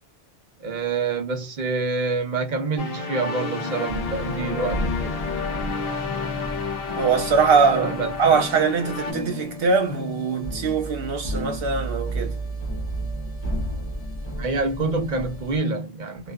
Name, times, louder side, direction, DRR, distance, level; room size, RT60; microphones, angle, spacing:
voice 1, 0.6-5.2 7.7-8.2 14.4-16.3, right 3 dB, 50° right, 0.8 m, -27 dB
sound 1, 2.8-9.1, left 4 dB, 70° left, 0.9 m, -30 dB
sound 2, 3.6-15.6, equal, 35° left, 0.6 m, -33 dB
voice 2, 7.0-7.9 8.2-12.4, right 5 dB, 70° right, 1.1 m, -22 dB
2.4 x 2.2 x 2.3 m
omnidirectional pair, 1.0 m